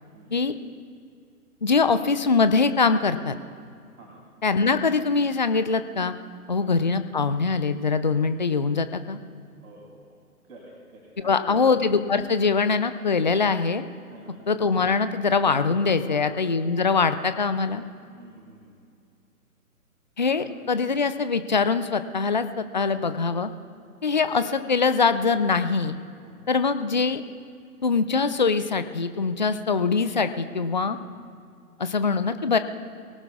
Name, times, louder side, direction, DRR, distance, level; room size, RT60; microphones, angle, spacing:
voice 1, 1.6-3.4 4.4-6.1 6.5-9.2 11.2-13.8 14.5-17.8 20.2-23.5 24.0-26.0 26.5-27.2 27.8-31.0 31.8-32.6, left 4 dB, 35° left, 11 dB, 0.4 m, -23 dB
voice 2, 9.6-10.2 10.5-11.7 14.1-14.4 15.9-16.6 18.1-18.8 20.3-20.5 24.2-24.4 26.2-26.4 30.8-31.1, right 2 dB, 65° right, -2 dB, 3.1 m, -47 dB
23.0 x 18.0 x 2.4 m, 2.3 s
figure-of-eight pair, 135°, 45 cm